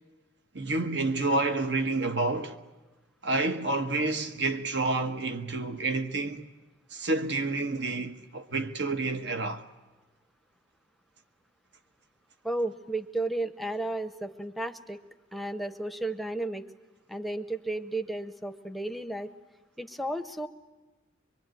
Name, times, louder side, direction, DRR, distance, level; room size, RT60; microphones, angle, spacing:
voice 1, 0.5-2.6 3.2-6.5 6.9-9.6, right 2 dB, 65° right, 1.4 m, -29 dB
voice 2, 12.4-15.0 15.3-16.7 17.1-19.3 19.8-20.5, right 2 dB, ahead, 0.8 m, -33 dB
24.0 x 23.5 x 9.2 m
head